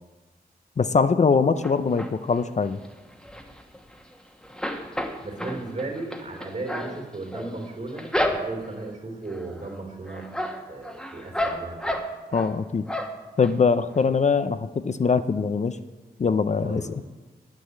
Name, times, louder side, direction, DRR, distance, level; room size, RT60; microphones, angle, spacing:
voice 1, 0.8-2.8 12.3-12.8 13.4-15.8 16.2-17.0, left 5 dB, 45° left, 11 dB, 0.5 m, -22 dB
sound 1, 1.6-2.4 2.8-4.2 4.4-8.8 9.3-9.7 10.1-12.5 12.9-13.5 13.9-14.0 14.3-14.4, left 1 dB, 5° left, 1.2 m, -31 dB
voice 2, 4.7-10.3 10.7-12.0 16.6-16.9, right 2 dB, 45° right, 0 dB, 3.1 m, -36 dB
9.7 x 8.5 x 8.3 m, 1.2 s
wide cardioid pair, 120°, 17 cm